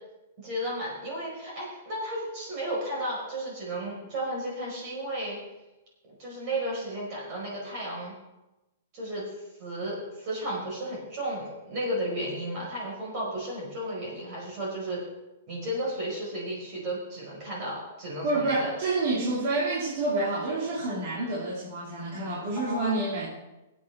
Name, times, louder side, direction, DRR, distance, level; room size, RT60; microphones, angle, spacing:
voice 1, 0.4-5.4 6.2-8.1 8.9-9.3 9.6-15.0 15.5-18.7 22.5-23.0, right 1 dB, 30° right, -4 dB, 5.1 m, -33 dB
voice 2, 18.2-23.3, right 2 dB, 45° right, -5 dB, 2.5 m, -28 dB
21.0 x 8.4 x 3.6 m, 1.0 s
hypercardioid pair, 180°, 0 cm